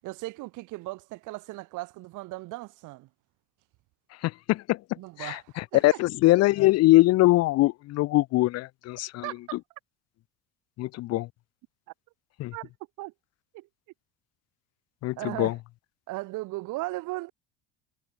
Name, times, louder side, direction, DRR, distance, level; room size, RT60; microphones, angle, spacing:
voice 1, 0.0-3.1 5.0-6.0 9.2-9.6 12.5-12.7 13.0-13.1 13.5-13.7 15.2-15.6 16.1-17.3, right 20 dB, 70° right, 7.9 m, -37 dB
voice 2, 4.2-4.8 5.2-9.2 10.8-11.3 12.4-12.5 15.0-15.5, left 18 dB, 55° left, 0.6 m, -22 dB
cardioid pair, 110°, 31 cm